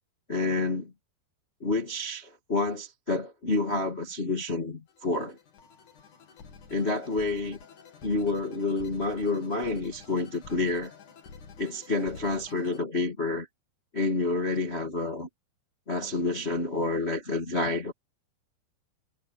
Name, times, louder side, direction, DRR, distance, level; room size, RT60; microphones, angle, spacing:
voice 1, 0.3-0.9 1.6-5.4 6.7-7.6 8.0-10.9 11.6-13.5 13.9-15.3 15.9-17.9, left 2 dB, 30° left, 1.2 m, -29 dB
sound 1, 4.9-12.8, left 5 dB, 50° left, 3.5 m, -49 dB
omnidirectional pair, 4.8 m